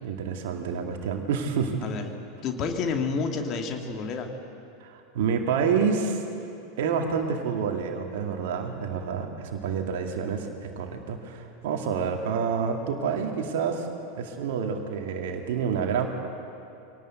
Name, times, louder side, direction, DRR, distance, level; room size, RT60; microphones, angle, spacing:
voice 1, 0.0-1.8 4.8-6.2 6.8-13.9 14.2-16.1, right 6 dB, 55° right, 3 dB, 2.2 m, -28 dB
voice 2, 1.8-2.1 2.4-4.3, left 5 dB, 35° left, 4 dB, 2.5 m, -29 dB
24.5 x 18.5 x 8.0 m, 2.6 s
figure-of-eight pair, 85°, 0 cm